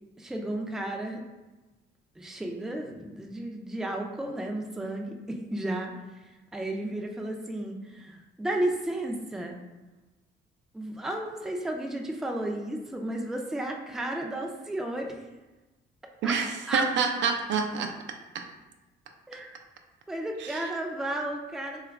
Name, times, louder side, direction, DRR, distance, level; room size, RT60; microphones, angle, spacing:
voice 1, 0.2-1.2 2.2-5.9 6.5-9.6 10.7-15.2 16.2-16.4 16.7-16.9 19.3-19.6 20.1-21.8, right 1 dB, ahead, 1 dB, 0.4 m, -33 dB
voice 2, 16.2-18.0 18.3-18.5 20.4-20.7, right 5 dB, 70° right, 5 dB, 0.4 m, -28 dB
2.8 x 2.3 x 3.3 m, 1.1 s
cardioid pair, 90°, 20 cm